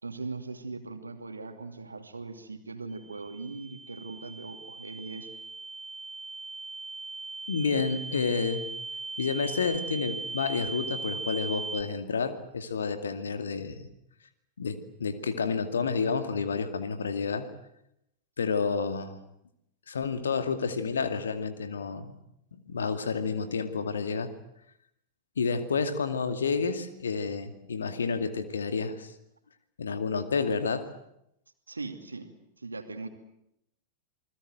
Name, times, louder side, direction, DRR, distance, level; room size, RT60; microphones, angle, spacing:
voice 1, 0.0-5.3 31.7-33.1, right 3 dB, 80° right, 7 dB, 2.6 m, -40 dB
sound 1, 2.9-11.8, right 3 dB, 15° right, 1.5 m, -39 dB
voice 2, 7.5-8.6 9.2-13.9 14.6-17.5 18.4-19.2 19.9-22.2 22.5-24.3 25.4-29.1 29.8-30.9, left 5 dB, 70° left, 9 dB, 2.3 m, -30 dB
28.0 x 20.5 x 7.9 m, 0.80 s
figure-of-eight pair, 90°, 0 cm